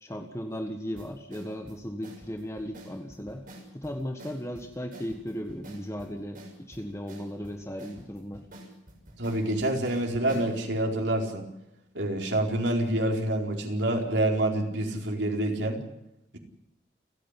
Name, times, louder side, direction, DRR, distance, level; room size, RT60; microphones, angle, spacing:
voice 1, 0.0-3.5 3.7-8.4, equal, 15° left, 4 dB, 1.5 m, -36 dB
sound 1, 1.0-10.6, right 1 dB, 50° right, 6.4 m, -48 dB
voice 2, 9.2-11.5 11.9-15.8, right 1 dB, 90° right, 1 dB, 4.4 m, -27 dB
29.5 x 10.0 x 10.0 m, 0.84 s
head